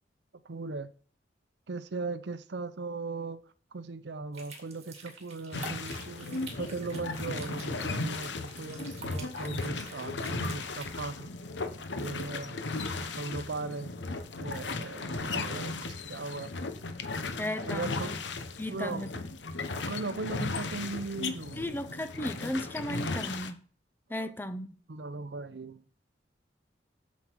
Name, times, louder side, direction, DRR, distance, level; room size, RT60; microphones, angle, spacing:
voice 1, 0.4-0.9 1.7-3.4 3.7-11.3 12.0-12.6 13.0-13.9 14.4-16.5 17.1-17.3 17.7-18.2 18.7-19.1 19.9-21.8 24.1-24.3 24.9-26.0, right 3 dB, 70° right, 0.6 m, -38 dB
sound 1, 4.3-11.0, right 4 dB, 35° right, 2.3 m, -49 dB
sound 2, 5.5-23.5, left 3 dB, 80° left, 0.9 m, -36 dB
voice 2, 17.4-18.2 18.6-19.1 21.6-23.6 24.1-24.8, left 1 dB, 10° left, 0.6 m, -35 dB
7.7 x 7.3 x 4.6 m
head